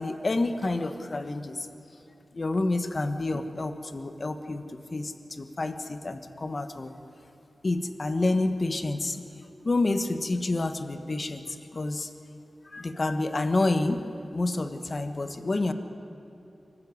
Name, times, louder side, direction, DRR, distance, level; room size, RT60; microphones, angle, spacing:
voice 1, 0.0-1.7 2.3-6.9 7.6-9.3 9.6-12.1 12.6-14.0 14.3-15.7, left 2 dB, 45° left, 9 dB, 1.4 m, -29 dB
24.5 x 15.0 x 9.7 m, 2.9 s
wide cardioid pair, 75°, 0 cm